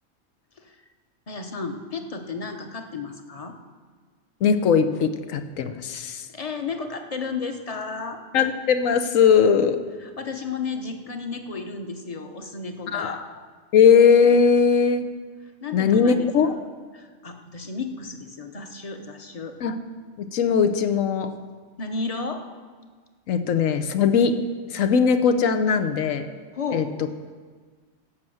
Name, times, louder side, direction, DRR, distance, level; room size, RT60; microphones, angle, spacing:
voice 1, 1.3-3.5 6.3-8.2 10.0-13.2 15.6-16.6 16.9-19.6 21.8-22.4 26.5-26.9, left 4 dB, 30° left, 6 dB, 0.9 m, -33 dB
voice 2, 4.4-6.3 8.3-9.8 12.9-13.2 13.7-15.1 15.7-16.6 19.6-19.7 20.2-21.3 23.3-24.4 24.7-26.3 26.7-26.9, left 6 dB, 85° left, 9 dB, 1.2 m, -19 dB
15.0 x 6.0 x 7.8 m, 1.5 s
omnidirectional pair, 1.3 m